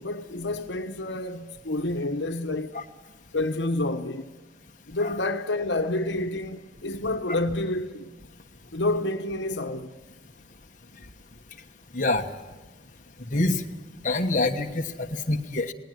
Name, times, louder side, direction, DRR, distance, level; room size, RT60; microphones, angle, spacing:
voice 1, 0.0-2.8 3.3-4.3 4.9-8.1 8.7-9.9, left 2 dB, 80° left, 1.2 m, -29 dB
voice 2, 11.9-12.2 13.3-13.6 14.0-15.7, left 2 dB, 45° left, 1.3 m, -26 dB
20.5 x 18.0 x 9.3 m
head